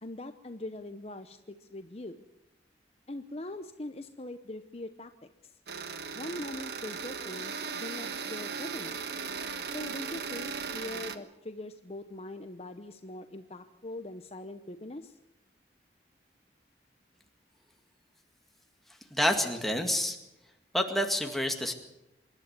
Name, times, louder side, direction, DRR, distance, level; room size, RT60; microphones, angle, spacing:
voice 1, 0.0-2.2 3.1-5.5 6.1-9.1 9.7-15.2, left 1 dB, 35° left, 8 dB, 0.9 m, -42 dB
sound 1, 5.7-11.2, right 5 dB, 65° right, 1.4 m, -37 dB
voice 2, 19.1-20.2 20.7-21.7, equal, ahead, 3 dB, 2.0 m, -28 dB
26.5 x 11.5 x 9.3 m, 0.90 s
head